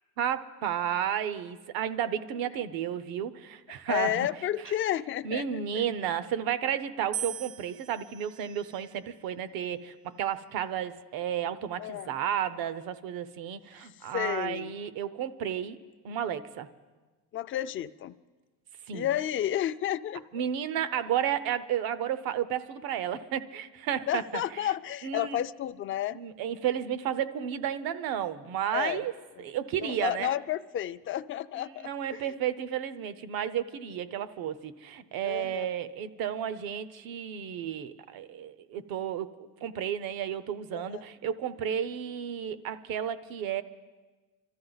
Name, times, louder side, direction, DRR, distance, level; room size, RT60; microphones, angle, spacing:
voice 1, 0.2-4.3 5.2-15.8 16.0-16.7 18.9-19.1 20.3-24.4 25.0-25.4 26.1-29.1 29.4-30.4 31.7-39.3 39.6-43.6, right 9 dB, 70° right, 14 dB, 0.8 m, -32 dB
voice 2, 3.9-5.8 11.8-12.1 14.1-14.8 17.3-18.1 18.9-20.4 24.1-26.2 28.7-29.0 29.4-29.5 29.8-32.2 35.2-35.6 40.7-41.0, left 12 dB, 35° left, 13 dB, 0.4 m, -31 dB
sound 1, 7.1-9.3 10.1-10.7, right 9 dB, 40° right, 0.5 m, -41 dB
25.5 x 13.5 x 4.0 m, 1.3 s
cardioid pair, 140°, 36 cm